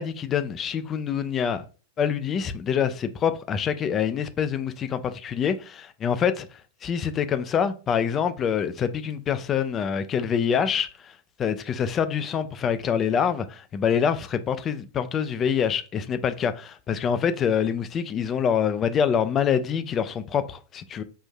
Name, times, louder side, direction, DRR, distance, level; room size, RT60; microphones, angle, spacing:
voice 1, 0.0-1.6 2.0-6.5 6.8-21.0, left 7 dB, 25° left, 0.4 m, -25 dB
5.4 x 2.6 x 2.2 m
figure-of-eight pair, 90°, 0 cm